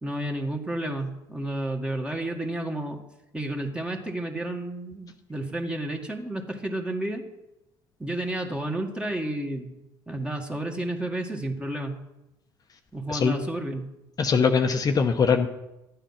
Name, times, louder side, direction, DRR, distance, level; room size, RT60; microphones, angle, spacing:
voice 1, 0.0-3.0 3.3-7.3 8.0-9.8 10.1-11.9 12.9-13.9, right 1 dB, 10° right, 3 dB, 2.0 m, -31 dB
voice 2, 14.2-15.5, left 5 dB, 35° left, 4 dB, 1.0 m, -22 dB
12.5 x 8.9 x 5.8 m, 0.93 s
hypercardioid pair, 75°, 10 cm